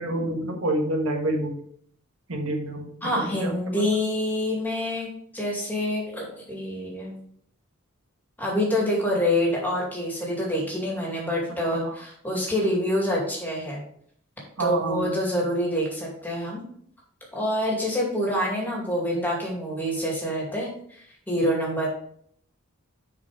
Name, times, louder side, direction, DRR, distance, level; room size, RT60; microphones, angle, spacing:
voice 1, 0.0-1.6 2.3-2.9 3.4-3.8 11.7-11.9 14.6-15.1, right 1 dB, 75° right, 2 dB, 1.3 m, -27 dB
voice 2, 3.0-7.1 8.4-13.8 14.6-16.6 17.3-21.9, left 1 dB, 10° left, -2 dB, 2.3 m, -26 dB
6.7 x 5.0 x 5.0 m, 0.64 s
head